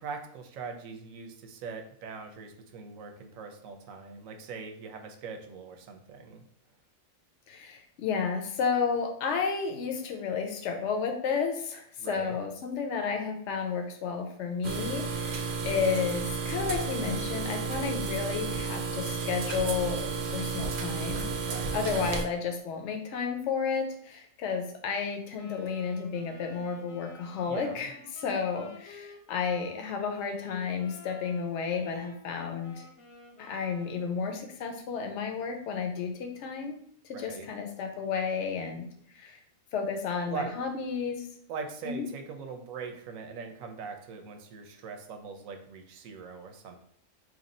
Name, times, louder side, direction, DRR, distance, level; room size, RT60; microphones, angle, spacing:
voice 1, 0.0-6.4 12.0-12.4 21.5-21.8 27.5-27.9 37.1-37.5 40.3-40.6 41.5-46.8, right 5 dB, 90° right, 5 dB, 1.0 m, -41 dB
voice 2, 7.5-21.3 21.7-32.8 33.4-36.8 37.2-38.9 39.2-39.4 39.7-41.3 41.8-42.1, left 6 dB, 65° left, 5 dB, 0.9 m, -32 dB
sound 1, 14.6-22.2, right 5 dB, 65° right, 0.5 m, -32 dB
Wind instrument woodwind instrument, 25.3-34.4, left 2 dB, 85° left, 1.3 m, -51 dB
3.0 x 2.6 x 4.0 m, 0.63 s
omnidirectional pair, 1.3 m